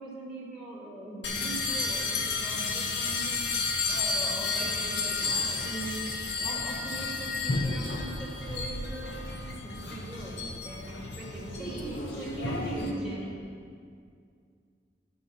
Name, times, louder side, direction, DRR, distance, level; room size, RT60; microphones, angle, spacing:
voice 1, 0.0-5.7 6.4-13.2, right 1 dB, ahead, -8 dB, 2.4 m, -41 dB
sound 1, 1.2-12.9, left 3 dB, 80° left, 0.9 m, -32 dB
voice 2, 5.2-6.1 11.5-13.3, right 1 dB, 55° left, -9 dB, 2.9 m, -39 dB
10.0 x 6.9 x 5.7 m, 2.2 s
head